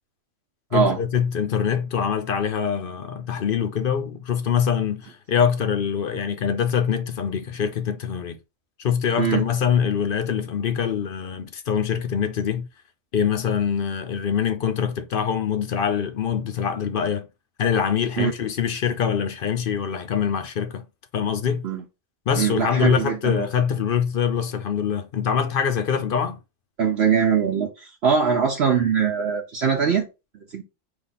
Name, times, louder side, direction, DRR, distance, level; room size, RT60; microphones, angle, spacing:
voice 1, 0.7-8.4 8.8-12.7 13.1-17.3 17.6-20.9 21.1-21.6 22.3-26.4, left 7 dB, 55° left, 0.7 m, -24 dB
voice 2, 22.4-23.5 26.8-30.1 30.5-30.6, right 6 dB, 60° right, 0.9 m, -22 dB
5.1 x 2.5 x 4.1 m
omnidirectional pair, 1.3 m